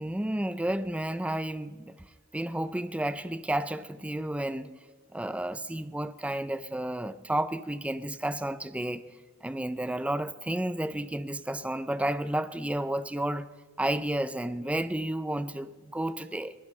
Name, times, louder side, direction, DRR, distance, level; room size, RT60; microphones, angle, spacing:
voice 1, 0.0-1.9 2.3-4.7 5.1-9.0 9.4-13.5 13.8-16.5, right 1 dB, 5° right, 0.4 m, -31 dB
22.5 x 16.5 x 3.2 m
head